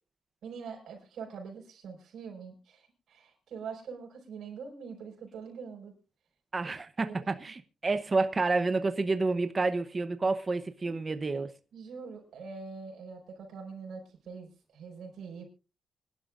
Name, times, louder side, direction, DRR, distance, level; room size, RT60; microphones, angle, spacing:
voice 1, 0.4-6.0 6.6-7.3 10.8-10.9 11.7-15.4, right 5 dB, 80° right, 5.7 m, -44 dB
voice 2, 6.5-11.5, right 3 dB, 25° right, 0.8 m, -29 dB
25.5 x 11.0 x 2.5 m
wide cardioid pair, 150°, 0 cm